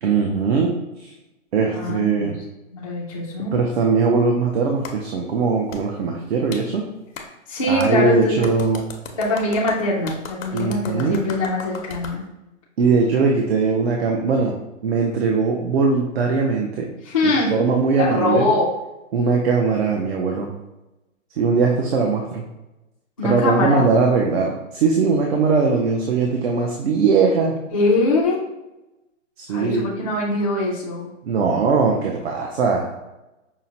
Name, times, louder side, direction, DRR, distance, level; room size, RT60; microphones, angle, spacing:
voice 1, 0.0-0.7 1.0-1.1 1.5-2.3 3.5-6.9 7.7-8.8 10.5-11.2 12.8-16.9 17.2-18.5 19.1-20.5 21.4-22.4 23.2-27.5 29.4-29.8 31.3-32.9, right 4 dB, 55° right, 0 dB, 0.6 m, -20 dB
voice 2, 1.6-2.4 2.7-3.6 7.5-8.4 9.1-12.2 17.0-17.5 18.0-18.7 23.2-23.9 27.7-28.4 29.5-31.1, left 2 dB, 30° left, -7 dB, 0.3 m, -22 dB
Clapping, 4.8-5.0 5.7-5.8 6.5-6.6 7.2-7.3 7.8-7.9 8.4-12.2, left 5 dB, 90° left, 0.8 m, -36 dB
5.6 x 2.1 x 2.7 m, 0.99 s
hypercardioid pair, 165°, 38 cm